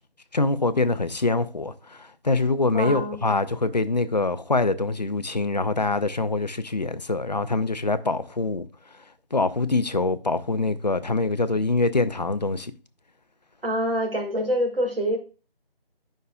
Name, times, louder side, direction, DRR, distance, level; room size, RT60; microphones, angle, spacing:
voice 1, 0.3-8.7 9.3-12.7, left 3 dB, 45° left, 0.5 m, -24 dB
voice 2, 2.7-3.2 13.6-15.2, equal, 70° right, 2.0 m, -25 dB
9.0 x 5.6 x 2.3 m
figure-of-eight pair, 170°, 30 cm